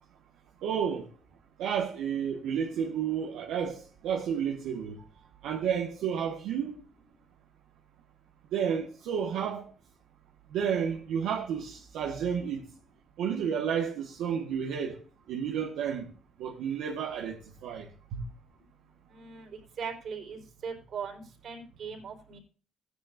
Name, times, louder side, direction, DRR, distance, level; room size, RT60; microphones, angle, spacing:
voice 1, 0.6-1.1 1.6-5.0 5.4-6.8 8.5-9.7 10.5-12.6 13.2-15.0 15.3-16.1 16.4-18.2, right 7 dB, 90° right, 1.3 m, -31 dB
voice 2, 19.1-19.5 19.8-22.4, right 6 dB, 65° right, 3.9 m, -39 dB
16.0 x 9.7 x 2.4 m
cardioid pair, 90°, 0 cm